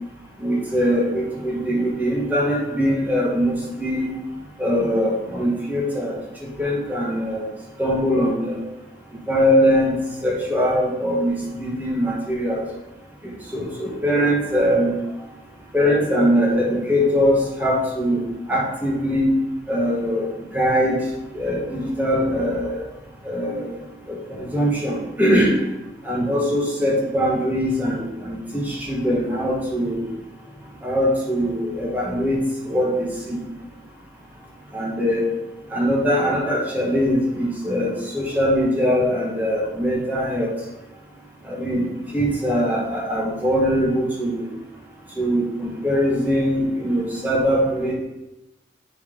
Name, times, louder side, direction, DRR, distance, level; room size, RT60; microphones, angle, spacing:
voice 1, 0.4-4.1 4.6-6.1 6.4-7.5 7.8-8.6 9.3-12.6 13.2-15.0 15.7-19.4 19.7-20.3 20.5-21.0 21.3-22.8 23.2-23.7 24.1-25.6 26.0-30.1 30.8-33.4 34.7-35.3 35.7-40.5 41.5-44.5 45.2-47.9, equal, 10° right, -4 dB, 1.4 m, -22 dB
6.8 x 4.0 x 5.2 m, 0.98 s
head